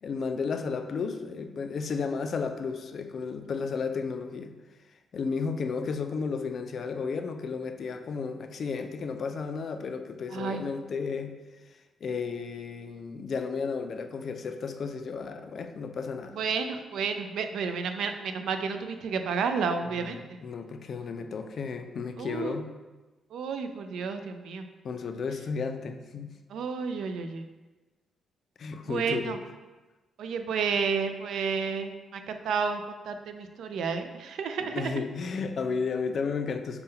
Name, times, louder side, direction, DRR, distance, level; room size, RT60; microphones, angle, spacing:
voice 1, 0.0-4.5 5.1-11.4 12.0-16.4 19.9-22.7 24.8-26.3 28.6-29.4 34.6-36.8, left 5 dB, 55° left, 7 dB, 0.3 m, -33 dB
voice 2, 10.3-10.6 16.4-20.2 22.2-22.5 23.3-24.7 26.5-27.4 28.9-29.4 30.2-32.8 33.1-35.0, right 5 dB, 80° right, 7 dB, 0.3 m, -31 dB
5.3 x 2.2 x 3.7 m, 1.2 s
cardioid pair, 110°, 0 cm